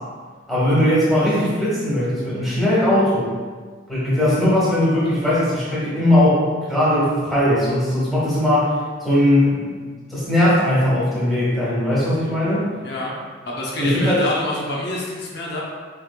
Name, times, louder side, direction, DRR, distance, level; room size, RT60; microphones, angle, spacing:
voice 1, 0.5-3.3 3.9-6.4 6.7-8.7 9.0-9.7 10.1-12.7 13.8-14.2, left 1 dB, ahead, -10 dB, 1.4 m, -19 dB
voice 2, 12.8-13.1 13.4-15.6, left 1 dB, 65° left, -4 dB, 0.8 m, -27 dB
4.7 x 3.4 x 2.4 m, 1.5 s
head